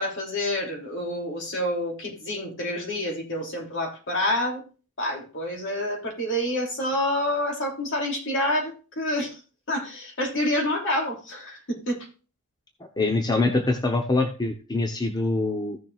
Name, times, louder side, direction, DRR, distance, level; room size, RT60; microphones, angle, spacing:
voice 1, 0.0-4.6 5.0-9.4 9.7-12.1, left 1 dB, 60° left, 1 dB, 3.0 m, -28 dB
voice 2, 12.8-15.8, left 2 dB, 20° left, 4 dB, 0.9 m, -24 dB
15.5 x 6.6 x 2.5 m, 0.36 s
head